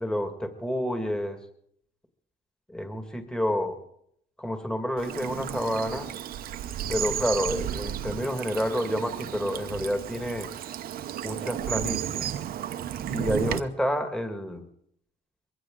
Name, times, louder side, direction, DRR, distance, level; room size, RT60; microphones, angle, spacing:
voice 1, 0.0-1.4 2.7-3.8 4.4-6.1 6.9-10.5 11.2-12.3 13.1-14.6, equal, 5° left, 6 dB, 2.0 m, -29 dB
Bird vocalization bird call bird song / Stream, 5.0-13.6, right 11 dB, 60° right, 0.9 m, -33 dB
22.5 x 16.0 x 3.9 m, 0.69 s
cardioid pair, 110°, 17 cm